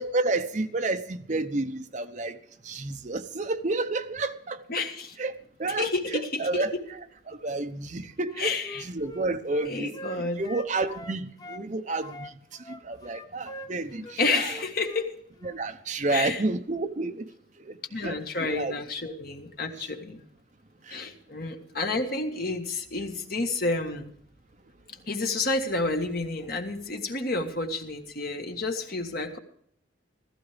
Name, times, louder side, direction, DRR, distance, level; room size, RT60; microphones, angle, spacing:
voice 1, 0.0-2.4 2.6-4.8 5.2-5.3 5.6-6.7 7.3-9.9 10.4-12.3 12.7-14.5 15.4-17.2 17.7-17.8 18.0-18.7 19.8-19.9, right 2 dB, 40° right, 9 dB, 0.8 m, -30 dB
voice 2, 4.7-5.1 5.7-6.8 8.4-8.8 9.6-10.4 14.2-15.1 16.1-16.4 17.9-20.2 20.9-24.1 25.1-29.4, left 3 dB, 50° left, 4 dB, 1.6 m, -30 dB
Wind instrument woodwind instrument, 8.2-11.7 12.0-15.1 15.4-15.6, left 1 dB, 20° left, 0.7 m, -43 dB
15.5 x 14.5 x 3.4 m, 0.66 s
head